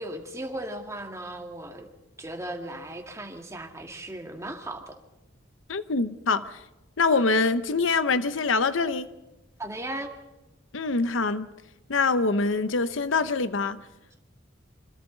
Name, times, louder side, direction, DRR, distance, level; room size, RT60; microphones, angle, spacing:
voice 1, 0.0-1.9 2.2-5.0 9.6-10.1, right 1 dB, 15° right, 2.1 m, -36 dB
voice 2, 5.7-6.5 7.0-9.1 10.7-11.5 11.9-13.8, left 4 dB, 75° left, 0.8 m, -24 dB
27.0 x 25.5 x 4.0 m
head